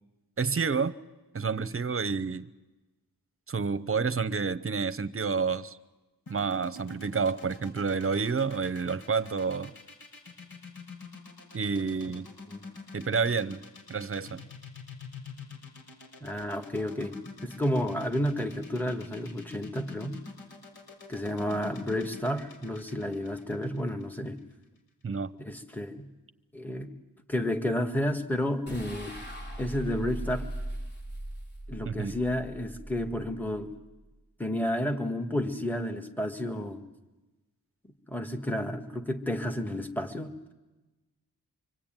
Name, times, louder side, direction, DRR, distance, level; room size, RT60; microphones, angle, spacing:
voice 1, 0.4-1.0 1.3-2.5 3.5-5.8 6.3-9.7 11.5-12.3 12.9-14.4 25.0-25.3 31.8-32.2, right 5 dB, 35° right, 13 dB, 0.9 m, -29 dB
sound 1, 6.3-24.4, left 4 dB, 70° left, 6.4 m, -46 dB
voice 2, 16.2-17.1 17.4-20.2 21.1-24.4 25.4-26.1 26.5-26.9 27.3-29.1 29.6-30.5 31.7-33.7 34.4-36.8 38.1-40.5, left 1 dB, 5° left, 6 dB, 1.7 m, -31 dB
sound 2, 28.7-34.0, right 1 dB, 25° left, 4.6 m, -40 dB
25.5 x 25.0 x 9.0 m, 1.1 s
wide cardioid pair, 145°, 38 cm